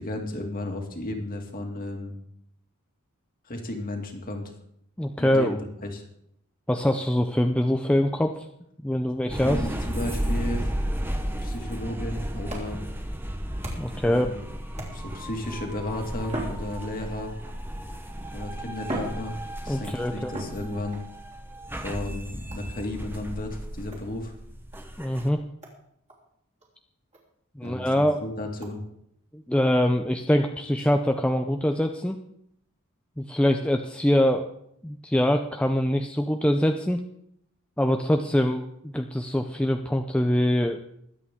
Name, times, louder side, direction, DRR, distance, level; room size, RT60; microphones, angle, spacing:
voice 1, 0.0-2.2 3.4-4.5 5.2-6.1 9.3-10.7 11.4-12.8 13.9-14.4 14.9-17.3 18.3-19.4 19.6-21.0 21.8-24.3 27.6-28.8, left 1 dB, 40° left, 2 dB, 2.2 m, -34 dB
voice 2, 5.0-5.6 6.7-8.5 8.8-9.6 13.8-14.3 19.7-20.3 25.0-25.4 27.6-28.2 29.3-32.2 33.2-34.5 34.8-37.0 37.8-40.8, equal, 5° left, 4 dB, 0.5 m, -24 dB
sound 1, 9.3-25.3, equal, 10° right, 1.0 m, -34 dB
sound 2, 12.5-14.1 14.7-15.3 16.2-17.3 18.2-18.3 18.8-19.9 20.3-21.1 22.5-22.8 23.9-24.1 24.7-24.8 25.2-25.3 25.6-25.8 26.1-26.2 26.6-26.7 27.1-27.2 27.6-27.7 28.6-28.7, right 1 dB, 30° right, 3.4 m, -38 dB
22.5 x 8.6 x 3.7 m, 0.73 s
head